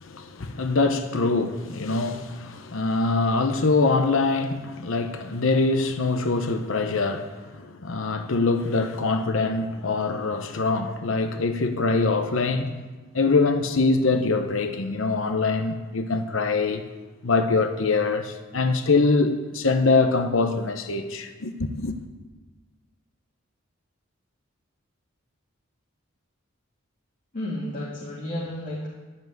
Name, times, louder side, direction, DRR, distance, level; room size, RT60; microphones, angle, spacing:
voice 1, 0.0-12.8 13.1-16.8 17.2-22.0, left 3 dB, 70° left, 0.9 m, -24 dB
voice 2, 27.3-28.9, left 1 dB, 40° left, 2.2 m, -32 dB
12.0 x 7.5 x 9.3 m
head